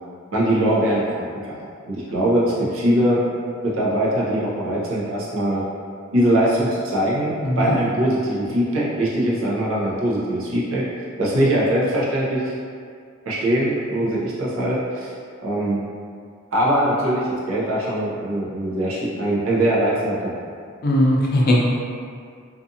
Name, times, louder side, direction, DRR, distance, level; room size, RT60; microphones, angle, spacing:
voice 1, 0.3-3.2 3.6-5.6 6.1-10.8 11.2-12.5 13.2-15.1 15.4-15.8 16.5-20.4, right 1 dB, 75° right, -7 dB, 0.7 m, -22 dB
voice 2, 7.4-7.7 20.8-21.6, left 1 dB, 45° left, -4 dB, 0.5 m, -18 dB
2.5 x 2.4 x 2.6 m, 2.2 s
head